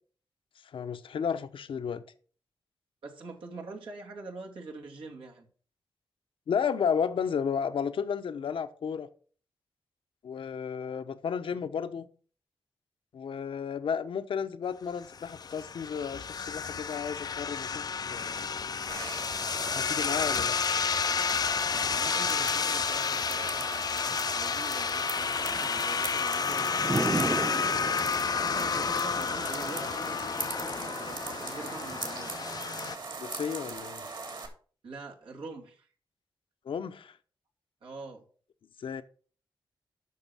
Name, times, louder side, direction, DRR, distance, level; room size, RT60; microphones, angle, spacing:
voice 1, 0.7-2.0 6.5-9.1 10.2-12.1 13.1-17.8 18.1-18.5 19.7-20.6 33.2-34.0 36.7-37.2 38.8-39.0, left 7 dB, 80° left, 0.9 m, -33 dB
voice 2, 3.0-5.5 21.9-23.8 24.3-28.0 28.3-32.5 34.8-35.9 37.8-38.3, right 3 dB, 85° right, 2.7 m, -44 dB
sound 1, 15.0-33.0, left 6 dB, 50° left, 0.4 m, -31 dB
sound 2, 18.9-34.5, right 4 dB, 60° right, 2.9 m, -40 dB
Thunder / Rain, 21.0-33.7, right 2 dB, 20° right, 0.8 m, -40 dB
9.5 x 6.2 x 6.2 m
cardioid pair, 70°, 9 cm